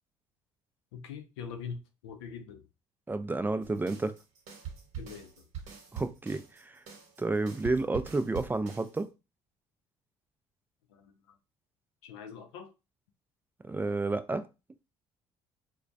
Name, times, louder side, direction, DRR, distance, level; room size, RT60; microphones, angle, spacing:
voice 1, 0.9-2.6 5.0-5.4 10.9-11.1 12.0-12.7, left 6 dB, 90° left, 0.4 m, -43 dB
voice 2, 3.1-4.1 5.9-6.8 7.2-9.1 13.7-14.5, right 3 dB, 15° right, 0.3 m, -31 dB
sound 1, 3.6-9.0, right 8 dB, 60° right, 1.0 m, -44 dB
2.2 x 2.1 x 2.6 m
hypercardioid pair, 65°, 14 cm